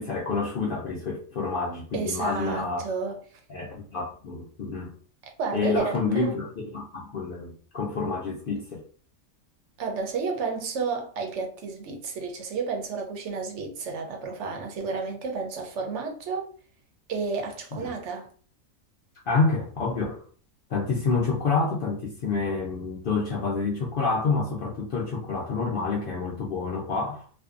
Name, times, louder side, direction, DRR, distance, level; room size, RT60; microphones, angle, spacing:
voice 1, 0.0-2.8 3.5-4.9 5.5-8.8 17.7-17.9 19.3-20.2 20.7-27.3, left 4 dB, 80° left, 0.4 m, -28 dB
voice 2, 1.9-3.4 5.4-6.4 9.8-16.5 17.1-18.3, right 4 dB, 65° right, 0.8 m, -31 dB
2.5 x 2.2 x 2.4 m
omnidirectional pair, 1.5 m